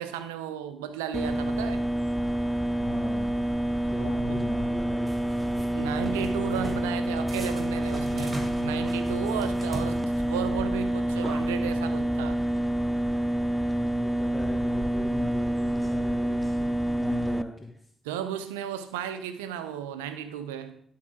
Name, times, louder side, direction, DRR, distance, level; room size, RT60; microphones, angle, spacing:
voice 1, 0.0-1.8 3.9-4.5 5.7-12.4 18.0-20.8, right 9 dB, 90° right, 0.5 m, -34 dB
sound 1, 1.1-17.4, right 1 dB, ahead, 0.4 m, -28 dB
voice 2, 2.8-3.5 3.9-5.3 13.7-17.8, left 2 dB, 25° left, 1.0 m, -39 dB
sound 2, 5.1-5.7 6.0-6.9 7.3-10.5, right 2 dB, 25° right, 2.4 m, -39 dB
11.5 x 4.8 x 3.6 m
hypercardioid pair, 40°, 0 cm